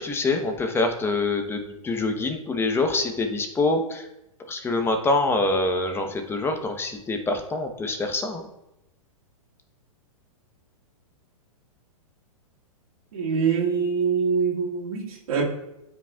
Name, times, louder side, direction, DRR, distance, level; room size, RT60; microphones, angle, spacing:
voice 1, 0.0-4.1 4.5-8.4, left 2 dB, 15° left, 0.9 m, -25 dB
voice 2, 13.1-15.4, right 6 dB, 75° right, 2.2 m, -24 dB
12.5 x 5.2 x 2.4 m
hypercardioid pair, 125°, 18 cm